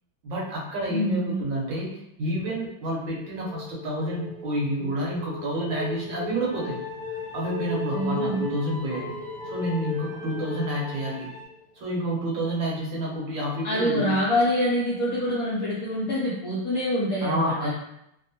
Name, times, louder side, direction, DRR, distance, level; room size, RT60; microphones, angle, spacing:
voice 1, 0.2-1.9 2.2-6.8 7.3-9.1 9.4-11.3 11.8-14.2 17.2-17.7, right 1 dB, 70° right, -4 dB, 1.4 m, -29 dB
voice 2, 0.9-1.4 7.9-8.4 13.6-17.7, equal, 75° left, -7 dB, 0.8 m, -25 dB
sound 1, 2.8-11.7, left 2 dB, 55° right, 1.0 m, -37 dB
sound 2, 6.4-11.5, left 1 dB, 45° left, 1.0 m, -42 dB
3.4 x 2.0 x 2.7 m, 0.80 s
omnidirectional pair, 2.2 m